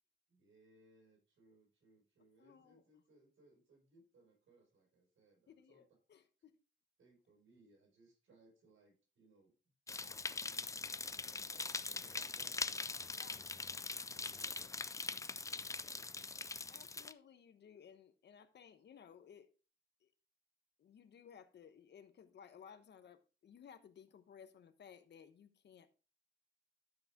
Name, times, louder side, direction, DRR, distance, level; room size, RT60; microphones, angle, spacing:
voice 1, 0.3-5.8 7.0-9.5 9.9-13.6 14.0-16.1, right 2 dB, 85° right, 6.0 m, -68 dB
voice 2, 2.4-2.8 5.5-6.6 11.5-11.9 13.2-13.4 16.7-19.5 20.0-20.1 20.8-25.9, left 7 dB, 60° left, 1.1 m, -59 dB
sound 1, 9.9-17.1, left 4 dB, 15° left, 0.4 m, -42 dB
12.5 x 5.6 x 3.7 m
wide cardioid pair, 160°, 20 cm